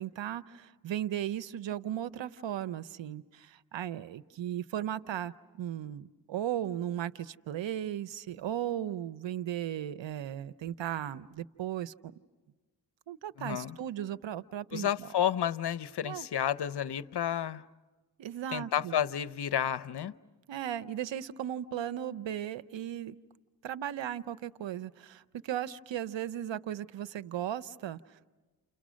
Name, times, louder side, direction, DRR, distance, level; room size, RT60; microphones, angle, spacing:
voice 1, 0.0-12.1 13.1-15.1 16.0-16.3 18.2-18.9 20.5-23.2 23.6-28.2, right 11 dB, 80° right, 16 dB, 0.8 m, -36 dB
voice 2, 13.4-13.8 14.7-17.6 18.5-20.1, left 10 dB, 60° left, 16 dB, 0.8 m, -31 dB
30.0 x 29.5 x 6.3 m, 1.2 s
cardioid pair, 65°, 44 cm